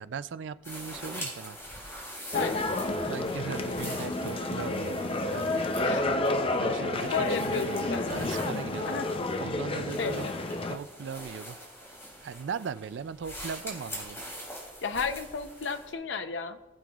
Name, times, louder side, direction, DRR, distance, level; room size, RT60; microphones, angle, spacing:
voice 1, 0.0-1.6 3.1-5.6 6.6-9.1 9.4-10.3 10.7-11.6 12.2-14.2, right 6 dB, 70° right, 15 dB, 0.4 m, -38 dB
sound 1, 0.6-15.9, equal, 15° left, 3.0 m, -44 dB
voice 2, 2.3-2.7 5.8-6.0 7.1-8.1 8.9-9.1 10.0-10.3 14.8-16.6, left 5 dB, 70° left, 9 dB, 0.7 m, -32 dB
sound 2, 2.3-10.8, left 2 dB, 30° left, 0.5 m, -30 dB
20.0 x 7.8 x 2.4 m, 1.1 s
head